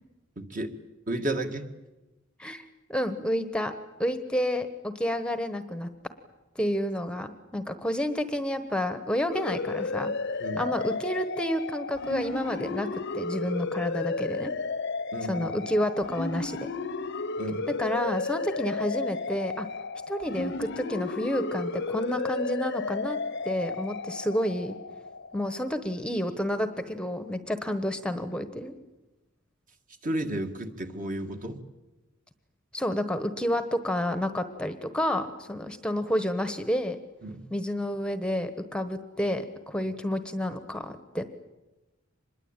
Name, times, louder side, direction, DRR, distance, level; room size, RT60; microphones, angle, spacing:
voice 1, 0.4-0.7 1.1-1.7 10.4-10.6 15.1-15.5 17.4-17.7 30.0-31.6 37.2-37.4, right 1 dB, 40° right, 5 dB, 2.0 m, -32 dB
voice 2, 2.4-3.7 4.0-5.9 6.5-10.1 10.6-14.5 15.2-16.7 17.8-19.7 20.1-23.2 23.4-24.8 25.3-28.7 32.7-37.0 37.5-41.3, equal, 5° left, 9 dB, 1.1 m, -30 dB
sound 1, 9.3-25.7, left 4 dB, 60° left, 0.9 m, -33 dB
25.5 x 21.0 x 8.9 m, 1.1 s
head